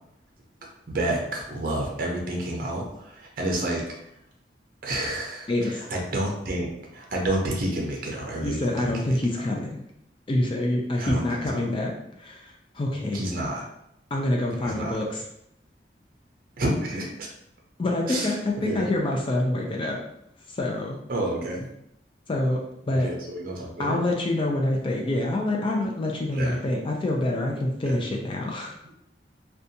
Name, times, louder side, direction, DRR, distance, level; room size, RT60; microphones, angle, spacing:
voice 1, 0.9-3.8 4.8-9.2 11.0-11.7 13.1-13.6 14.6-15.0 16.6-17.3 18.1-18.3 18.6-18.9 21.1-21.7 22.9-24.0 26.3-26.6 27.9-28.0, right 1 dB, 50° right, -1 dB, 0.5 m, -29 dB
voice 2, 5.5-5.8 8.4-9.8 10.3-11.9 12.2-13.2 14.1-15.2 17.8-20.0 20.5-21.0 22.3-22.6 22.9-23.1 23.8-28.7, left 1 dB, 30° left, 0 dB, 0.3 m, -26 dB
2.6 x 2.2 x 2.6 m, 0.78 s
head